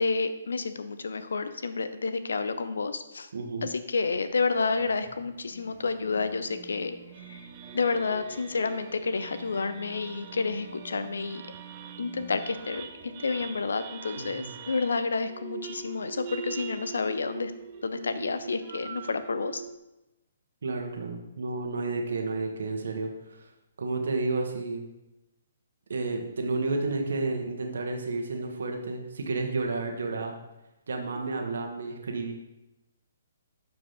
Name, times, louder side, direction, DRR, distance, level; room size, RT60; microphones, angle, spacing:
voice 1, 0.0-3.3 3.6-7.0 7.3-7.4 7.7-11.4 12.0-12.9 13.2-17.5 17.8-19.6, left 4 dB, 75° left, 11 dB, 0.7 m, -30 dB
voice 2, 3.3-3.7 14.2-14.5 20.6-23.4 23.8-24.9 25.9-30.3 30.9-32.3, right 3 dB, 70° right, 3 dB, 1.5 m, -31 dB
sound 1, 4.3-13.8, equal, 45° left, 1.5 m, -51 dB
sound 2, 6.5-19.8, right 7 dB, 35° right, 0.7 m, -43 dB
11.5 x 4.9 x 3.8 m, 0.96 s
figure-of-eight pair, 135°, 0 cm